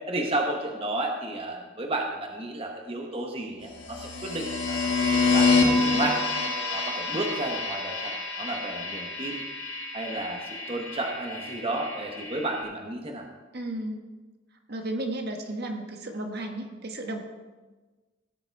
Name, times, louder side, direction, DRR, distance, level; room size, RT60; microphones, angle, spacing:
voice 1, 0.1-6.2 6.7-9.4 9.9-13.3, right 2 dB, 30° right, 1 dB, 1.2 m, -32 dB
sound 1, 3.8-12.6, left 3 dB, 70° left, 2.4 m, -27 dB
voice 2, 13.5-14.0 14.7-17.2, right 1 dB, 55° right, 3 dB, 1.4 m, -33 dB
17.0 x 7.3 x 4.7 m, 1.3 s
head